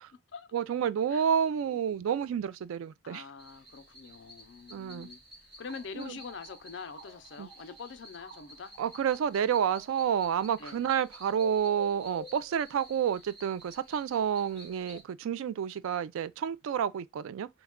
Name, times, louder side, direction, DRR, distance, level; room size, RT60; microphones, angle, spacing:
voice 1, 0.5-3.2 4.7-5.1 5.9-6.2 7.4-7.5 8.8-17.5, right 8 dB, 80° right, 0.3 m, -29 dB
voice 2, 3.0-5.2 5.6-8.7 10.6-10.8, left 5 dB, 60° left, 0.5 m, -44 dB
ambience spooky forest, 3.4-15.0, left 1 dB, 25° right, 1.5 m, -51 dB
3.0 x 2.3 x 3.5 m
head